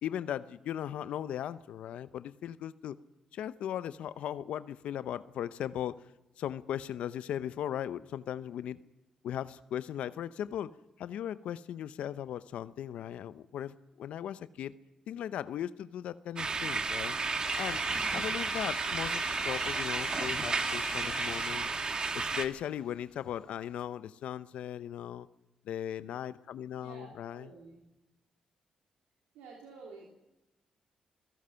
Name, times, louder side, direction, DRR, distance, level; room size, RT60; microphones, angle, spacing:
voice 1, 0.0-3.0 3.3-6.0 6.4-8.8 9.2-10.7 11.0-14.7 15.1-17.1 17.6-17.8 18.1-21.7 22.1-25.3 25.6-27.5, left 10 dB, 75° left, 15 dB, 0.7 m, -38 dB
sound 1, 16.4-22.4, right 4 dB, 45° right, 1.8 m, -32 dB
sound 2, 17.4-23.8, left 4 dB, 45° left, 3.0 m, -46 dB
voice 2, 19.4-19.7 26.7-27.9 29.3-30.1, right 4 dB, 90° right, -2 dB, 3.2 m, -51 dB
28.0 x 17.5 x 5.7 m, 1.0 s
supercardioid pair, 50°, 2 cm